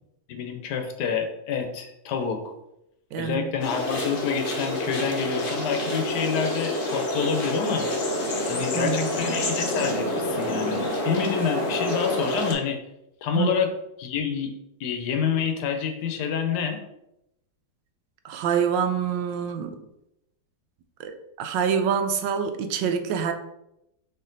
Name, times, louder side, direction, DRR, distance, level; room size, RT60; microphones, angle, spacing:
voice 1, 0.3-2.4 3.2-7.9 8.5-10.8 11.0-12.8 13.2-13.7 14.0-14.5 14.8-16.8, left 7 dB, 70° left, 6 dB, 1.2 m, -27 dB
voice 2, 3.1-3.5 8.7-9.1 13.3-13.6 18.2-19.8 21.0-23.3, right 7 dB, 85° right, 7 dB, 1.2 m, -26 dB
sound 1, 3.6-12.5, left 1 dB, 55° left, 0.6 m, -28 dB
4.4 x 3.1 x 3.8 m, 0.84 s
omnidirectional pair, 1.9 m